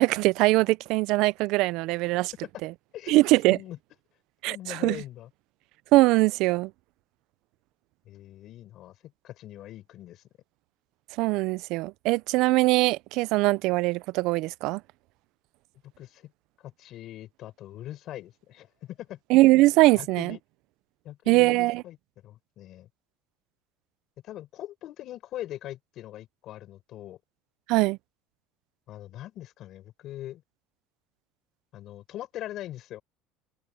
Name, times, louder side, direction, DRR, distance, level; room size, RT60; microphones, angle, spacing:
voice 1, 0.0-2.3 2.6-2.7 3.1-3.6 4.4-5.0 5.9-6.7 11.2-14.8 19.3-20.4 21.3-21.8 27.7-28.0, right 20 dB, 55° right, 0.4 m, -22 dB
voice 2, 3.5-3.8 4.4-5.3 8.1-9.0 9.2-10.2 16.0-16.3 16.6-19.2 19.9-20.4 21.0-22.0 22.2-22.9 24.2-27.2 28.9-30.4 31.7-33.0, left 13 dB, 40° left, 6.0 m, -41 dB
cardioid pair, 165°, 0 cm